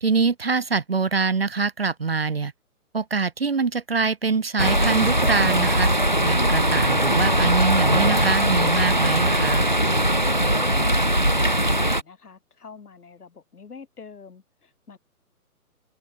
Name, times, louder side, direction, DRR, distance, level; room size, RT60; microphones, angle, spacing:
voice 1, 0.0-2.5 2.9-5.9 6.2-9.7, right 4 dB, 40° right, 0.7 m, -24 dB
sound 1, 4.6-12.0, right 1 dB, 35° left, 0.5 m, -20 dB
voice 2, 10.6-15.0, left 5 dB, 85° left, 5.0 m, -44 dB
hypercardioid pair, 180°, 44 cm